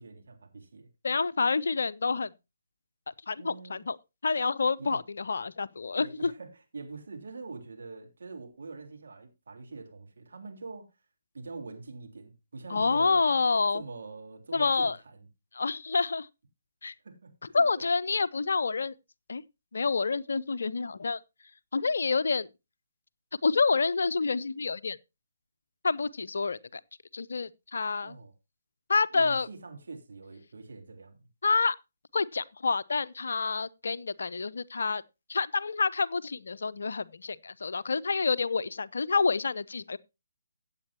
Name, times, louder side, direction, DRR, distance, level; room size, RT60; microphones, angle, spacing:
voice 1, 0.0-0.9 3.4-3.8 4.8-5.0 6.0-10.9 11.3-13.3 13.7-15.3 17.0-17.9 28.0-28.3 29.1-31.3, right 3 dB, 60° right, 3.5 m, -44 dB
voice 2, 1.0-2.3 3.3-4.0 4.2-6.3 12.7-13.8 14.5-15.0 15.5-16.3 16.8-16.9 17.5-18.9 19.3-19.4 19.7-21.2 21.7-22.5 23.4-25.0 25.8-26.8 27.1-28.1 28.9-29.5 31.4-31.8 32.1-35.0 35.3-40.0, left 4 dB, 60° left, 0.5 m, -28 dB
16.0 x 8.2 x 2.8 m
figure-of-eight pair, 140°, 0 cm